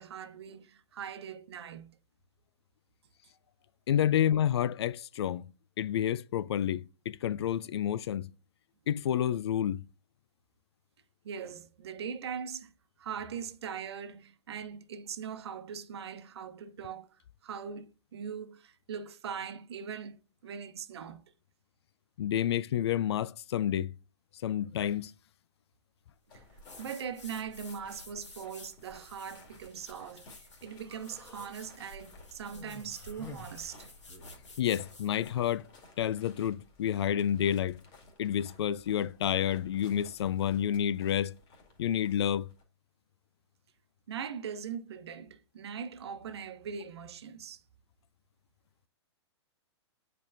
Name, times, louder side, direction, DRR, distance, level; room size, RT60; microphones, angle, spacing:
voice 1, 0.0-2.0 11.2-12.7 13.0-21.3 26.3-33.9 44.1-47.6, right 7 dB, 65° right, 0.9 m, -41 dB
voice 2, 3.9-5.5 5.8-8.3 8.9-9.8 22.2-23.9 24.4-25.1 34.6-35.7 36.0-37.8 38.2-41.3 41.8-42.5, left 10 dB, 65° left, 0.4 m, -29 dB
sound 1, 26.3-42.6, left 3 dB, 35° left, 2.2 m, -58 dB
sound 2, 26.6-35.6, left 2 dB, 90° left, 1.8 m, -52 dB
Human voice, 30.8-31.5 32.5-34.4, left 2 dB, 20° left, 1.7 m, -50 dB
8.5 x 4.6 x 2.6 m
hypercardioid pair, 120°, 15 cm